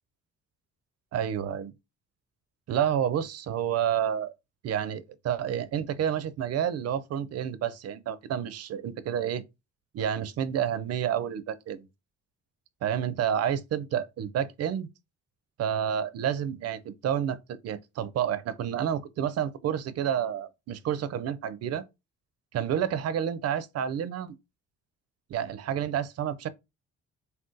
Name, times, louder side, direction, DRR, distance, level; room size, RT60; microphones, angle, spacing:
voice 1, 1.1-1.7 2.7-4.3 4.6-9.4 9.9-11.9 12.8-14.9 15.6-21.8 22.5-24.3 25.3-26.5, right 9 dB, 55° right, 0.4 m, -29 dB
2.5 x 2.2 x 3.8 m
cardioid pair, 90°, 30 cm